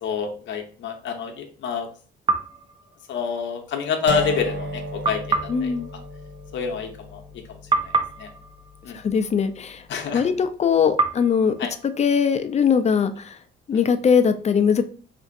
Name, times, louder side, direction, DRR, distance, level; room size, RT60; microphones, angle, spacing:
voice 1, 0.0-1.9 3.1-5.7 6.5-7.2 7.5-7.6 7.8-7.9 8.2-8.3 8.8-9.0 9.9-10.3 11.6-11.7 13.7-13.8, left 6 dB, 70° left, 4 dB, 0.7 m, -27 dB
sound 1, 2.3-3.6 5.0-7.4 7.7-10.0 11.0-12.8, right 4 dB, 25° right, 0.5 m, -29 dB
sound 2, 4.1-10.0, right 1 dB, 65° right, 0.7 m, -35 dB
voice 2, 5.5-5.9 8.9-9.8 10.1-11.5 12.0-13.4 13.7-14.8, left 6 dB, 35° left, 10 dB, 0.4 m, -20 dB
3.7 x 2.6 x 2.5 m, 0.40 s
cardioid pair, 90°, 20 cm